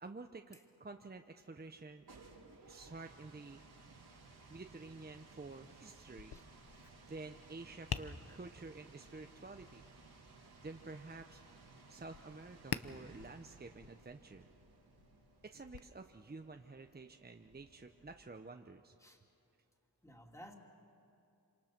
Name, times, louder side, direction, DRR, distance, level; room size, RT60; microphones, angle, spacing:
voice 1, 0.0-2.0 2.7-3.6 4.5-6.4 7.1-9.9 10.6-11.4 11.9-14.5 15.4-18.9, right 3 dB, 25° right, 5 dB, 0.8 m, -50 dB
sound 1, 1.8-18.5, right 3 dB, 75° right, 3.1 m, -60 dB
Tap, 6.1-15.8, left 7 dB, 75° left, 0.8 m, -49 dB
voice 2, 20.0-20.6, equal, 10° left, 1 dB, 2.9 m, -55 dB
26.5 x 26.5 x 6.0 m, 2.7 s
wide cardioid pair, 75°, 38 cm